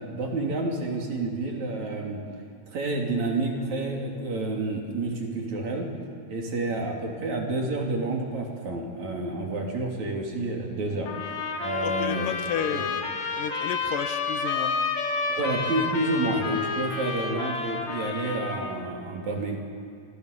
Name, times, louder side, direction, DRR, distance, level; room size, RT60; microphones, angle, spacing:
voice 1, 0.1-2.2 2.7-5.9 6.3-11.1 11.6-12.3 12.7-12.8 15.3-19.6, right 2 dB, 60° right, 0 dB, 4.4 m, -29 dB
sound 1, 11.1-18.8, left 4 dB, 60° left, 3.3 m, -30 dB
voice 2, 11.8-13.0 13.3-14.8, left 8 dB, 80° left, 8 dB, 3.0 m, -32 dB
27.5 x 23.5 x 6.8 m, 2.4 s
omnidirectional pair, 3.8 m